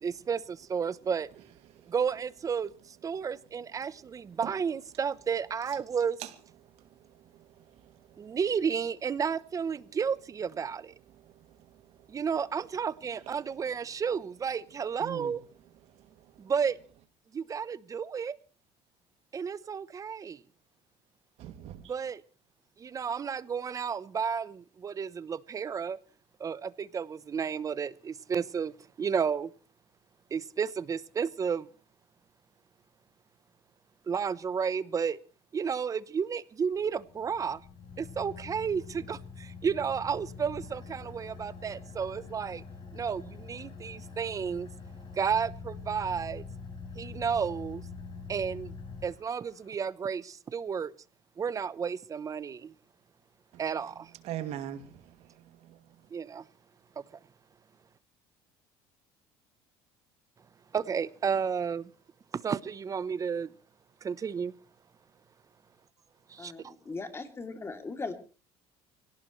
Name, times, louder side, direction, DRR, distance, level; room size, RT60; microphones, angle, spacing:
voice 1, 0.0-1.3 1.9-6.2 8.2-10.9 12.1-15.4 16.4-16.8 17.3-18.4 19.3-20.4 21.8-22.2 22.8-26.0 26.4-29.5 30.3-31.7 34.1-35.2 35.5-37.6 38.0-42.6 42.9-44.7 45.1-46.4 47.0-47.8 48.3-48.7 49.0-50.9 51.4-52.7 53.6-54.1 56.1-56.4 57.0-57.1 60.7-61.9 62.3-63.5 64.0-64.5 66.3-66.7, right 6 dB, 30° right, 0.9 m, -32 dB
voice 2, 7.6-8.2 11.2-11.3 15.0-15.3 21.4-21.8 54.2-54.9, right 11 dB, 65° right, 2.6 m, -39 dB
Car / Idling, 36.8-49.7, left 4 dB, 45° left, 7.1 m, -45 dB
voice 3, 66.4-68.1, left 3 dB, 20° left, 3.0 m, -39 dB
26.0 x 17.5 x 3.2 m
cardioid pair, 120°, 12 cm